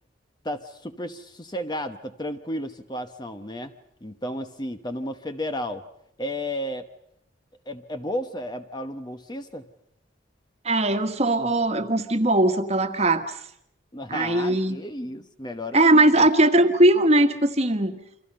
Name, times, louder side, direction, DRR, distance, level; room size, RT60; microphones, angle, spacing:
voice 1, 0.4-3.7 4.0-5.8 6.2-6.9 7.7-9.7 13.9-16.3, left 1 dB, 20° left, 8 dB, 1.0 m, -33 dB
voice 2, 10.6-13.4 14.1-14.8 15.7-18.0, right 1 dB, 30° right, 7 dB, 1.5 m, -20 dB
29.0 x 26.5 x 5.5 m, 0.75 s
head